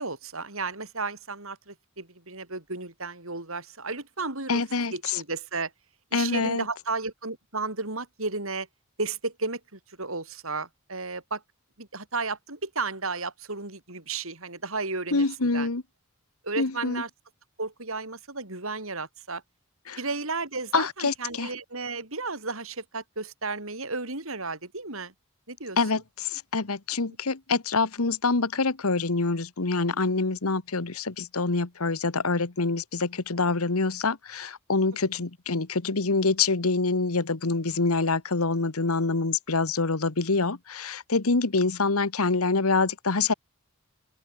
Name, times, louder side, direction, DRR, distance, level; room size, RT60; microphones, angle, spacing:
voice 1, 0.0-4.6 4.9-5.7 6.1-8.7 9.0-11.4 11.8-15.7 16.4-17.1 17.6-19.4 20.0-25.1 25.5-26.0, right 3 dB, 70° right, 6.0 m, -33 dB
voice 2, 4.5-4.9 6.1-6.6 15.1-15.8 16.6-17.0 19.9-20.0 20.7-21.5 25.8-43.3, left 3 dB, 85° left, 1.4 m, -26 dB
open air
head